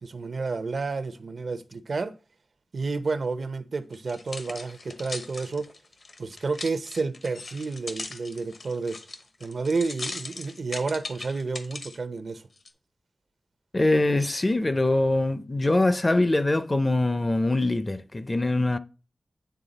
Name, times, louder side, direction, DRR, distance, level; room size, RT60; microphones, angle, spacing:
voice 1, 0.0-2.1 2.7-5.7 6.2-9.0 9.4-12.5, right 4 dB, 65° right, 0.6 m, -30 dB
sound 1, 3.9-12.0 12.6-12.7, left 3 dB, 65° left, 1.0 m, -39 dB
voice 2, 13.7-18.8, left 2 dB, 30° left, 0.5 m, -23 dB
9.3 x 3.6 x 4.0 m
wide cardioid pair, 70°, 0 cm